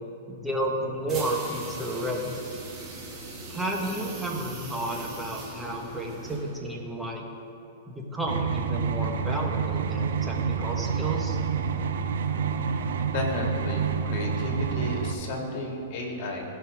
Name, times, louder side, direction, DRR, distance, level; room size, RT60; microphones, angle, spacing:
voice 1, 0.3-2.4 3.5-7.3 7.9-11.4, right 1 dB, 10° right, 0 dB, 1.6 m, -32 dB
sound 1, 1.1-6.7, right 2 dB, 30° right, 2.4 m, -40 dB
sound 2, 8.3-15.1, right 6 dB, 70° right, 0.7 m, -28 dB
voice 2, 13.1-16.4, left 2 dB, 50° left, 0 dB, 2.5 m, -32 dB
16.0 x 5.7 x 3.8 m, 2.8 s
hypercardioid pair, 110°, 0 cm